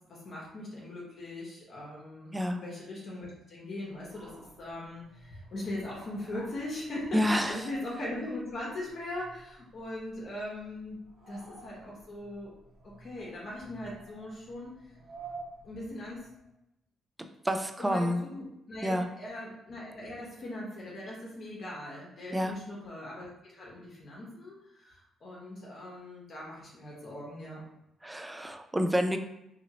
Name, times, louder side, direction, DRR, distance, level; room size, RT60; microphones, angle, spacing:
voice 1, 0.1-11.0 11.3-12.5 12.8-14.7 15.6-16.3 17.8-27.6, left 1 dB, 55° left, -5 dB, 0.9 m, -40 dB
sound 1, 3.9-16.5, right 3 dB, 60° right, 1.2 m, -52 dB
voice 2, 7.1-7.7 17.4-18.2 18.8-19.1 22.3-22.6 28.0-29.2, equal, 10° right, 6 dB, 0.3 m, -28 dB
2.8 x 2.8 x 2.7 m, 0.86 s
cardioid pair, 90°, 0 cm